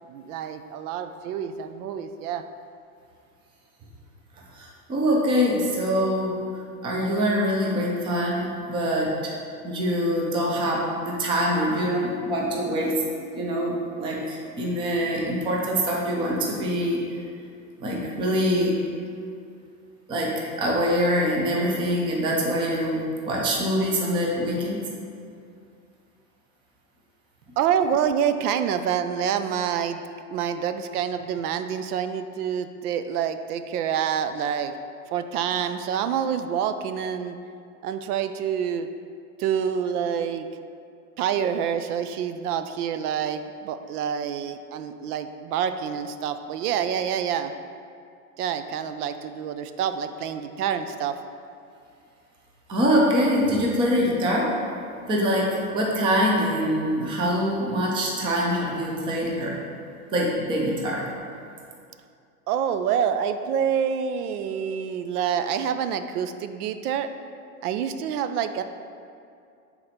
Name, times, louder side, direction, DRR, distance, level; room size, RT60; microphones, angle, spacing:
voice 1, 0.1-2.4 27.6-30.0 30.3-34.7 35.1-37.4 37.8-38.9 39.4-40.5 41.2-47.5 48.4-51.2 62.5-67.1 67.6-68.6, right 8 dB, 75° right, 9 dB, 0.5 m, -27 dB
voice 2, 4.4-9.3 9.6-13.0 13.3-17.0 17.8-18.8 20.1-24.8 52.7-54.6 55.1-59.6 60.1-61.1, equal, 10° right, -2 dB, 0.4 m, -24 dB
6.0 x 3.9 x 4.2 m, 2.4 s
supercardioid pair, 145°, 46 cm